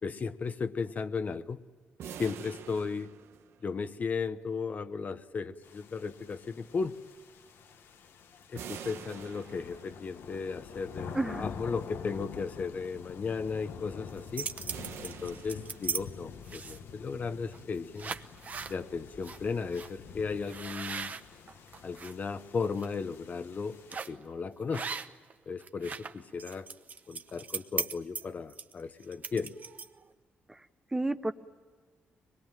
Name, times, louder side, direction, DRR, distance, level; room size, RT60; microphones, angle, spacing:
voice 1, 0.0-1.6 2.2-3.1 3.6-7.0 8.5-14.5 15.0-18.1 18.7-21.1 21.8-23.8 24.1-24.9 25.5-26.7 27.1-29.5, left 5 dB, 40° left, 11 dB, 0.9 m, -35 dB
sound 1, 2.0-3.9 8.6-10.2 14.7-16.3, right 8 dB, 85° right, 1.2 m, -46 dB
sound 2, 5.6-24.0, left 6 dB, 70° left, 1.3 m, -47 dB
voice 2, 11.1-11.5 30.5-30.6 30.9-31.3, right 2 dB, 10° right, 10 dB, 0.8 m, -31 dB
sound 3, 14.1-16.0 16.5-16.9 17.5-17.7 18.0-18.8 19.2-19.4 19.7-19.9 20.5-22.1 22.6-22.9 23.9-24.2 24.7-25.3 25.6-30.1, right 5 dB, 40° right, 1.0 m, -38 dB
24.5 x 21.0 x 9.0 m, 1.4 s
cardioid pair, 125°, 4 cm